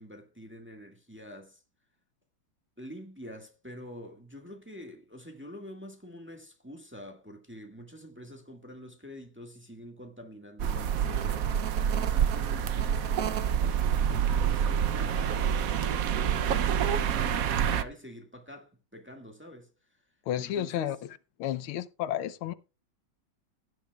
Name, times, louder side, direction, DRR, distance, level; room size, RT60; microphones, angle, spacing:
voice 1, 0.0-1.6 2.8-11.5 12.0-15.8 16.1-19.7 20.3-20.9, equal, 5° right, 1.6 m, -46 dB
sound 1, 10.6-17.8, right 8 dB, 65° right, 0.8 m, -27 dB
voice 2, 20.3-21.0 21.4-22.5, left 11 dB, 85° left, 1.6 m, -31 dB
16.5 x 10.5 x 2.4 m
omnidirectional pair, 2.3 m